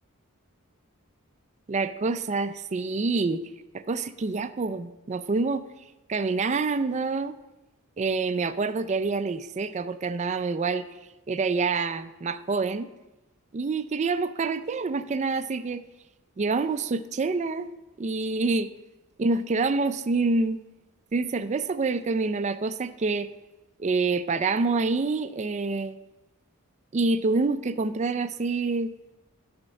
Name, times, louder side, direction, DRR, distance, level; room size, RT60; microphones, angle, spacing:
voice 1, 1.7-5.7 6.1-7.4 8.0-10.9 11.3-12.9 13.5-15.8 16.4-17.7 18.0-18.7 19.2-20.6 21.1-23.3 23.8-26.0 26.9-28.9, right 3 dB, 30° right, 12 dB, 0.4 m, -27 dB
10.5 x 4.3 x 6.4 m, 1.0 s
head